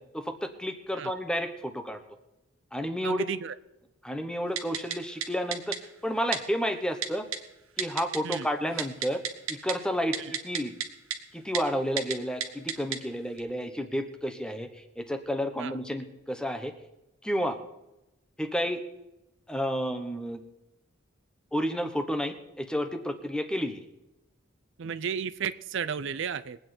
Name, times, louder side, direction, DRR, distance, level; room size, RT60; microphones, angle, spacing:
voice 1, 0.1-2.0 2.7-3.2 4.0-5.8 6.0-7.3 7.8-9.2 9.5-10.7 11.3-16.7 17.2-17.6 18.4-18.8 19.5-20.4 21.5-23.8, equal, 5° left, 7 dB, 1.1 m, -31 dB
voice 2, 3.0-3.5 8.2-8.5 10.3-10.4 15.6-15.8 24.8-26.6, right 7 dB, 60° right, 14 dB, 0.5 m, -33 dB
Typing, 4.6-5.0 5.2-5.3 5.5-5.8 6.3-6.4 7.0-7.4 7.8-8.4 8.7-9.7 10.1-10.9 11.1-11.2 11.5-11.6 12.0-12.1 12.4-13.0 13.4-13.5, right 8 dB, 85° right, 1.4 m, -30 dB
22.0 x 8.9 x 4.4 m, 0.92 s
head